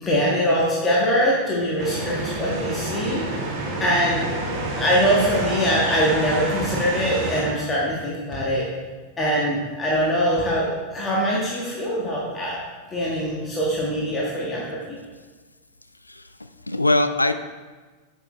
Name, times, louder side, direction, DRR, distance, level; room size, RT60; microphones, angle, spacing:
voice 1, 0.0-3.3 3.8-4.3 4.7-8.7 9.2-12.6 12.9-15.0, equal, 20° left, -5 dB, 1.6 m, -23 dB
sound 1, 1.8-7.4, right 2 dB, 45° right, 1.8 m, -28 dB
sound 2, 5.2-5.5 6.6-6.8 8.3-8.5 10.3-10.6, left 3 dB, 45° left, 1.7 m, -38 dB
voice 2, 16.0-17.3, left 2 dB, 85° left, 10 dB, 0.3 m, -22 dB
8.9 x 6.2 x 3.2 m, 1.4 s
figure-of-eight pair, 90°, 0 cm